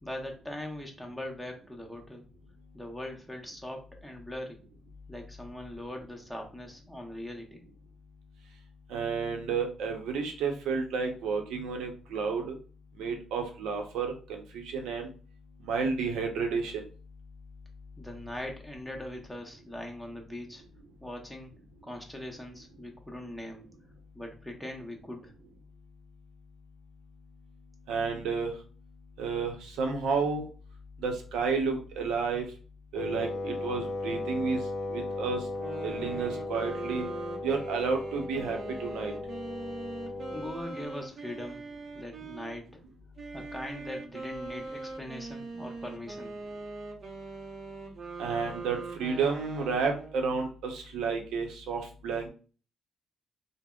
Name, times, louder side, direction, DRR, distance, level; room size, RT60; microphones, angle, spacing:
voice 1, 0.0-2.2 2.7-4.6 5.1-7.6 18.0-20.6 21.0-21.5 21.8-23.7 24.1-25.3 40.3-41.6 41.9-42.8 43.3-46.3, left 1 dB, ahead, 1 dB, 0.7 m, -41 dB
voice 2, 8.9-12.5 13.0-15.1 15.6-16.8 27.9-28.6 29.2-30.5 31.0-32.5 32.9-34.6 34.9-35.5 35.8-37.1 37.4-39.1 48.2-52.3, right 5 dB, 85° right, 4 dB, 0.6 m, -31 dB
Wind instrument woodwind instrument, 32.9-40.6, left 2 dB, 65° left, 0.5 m, -36 dB
sound 1, 35.5-42.6 43.2-50.3, right 3 dB, 50° right, 0.7 m, -42 dB
3.4 x 2.0 x 2.3 m, 0.37 s
cardioid pair, 90°, 0 cm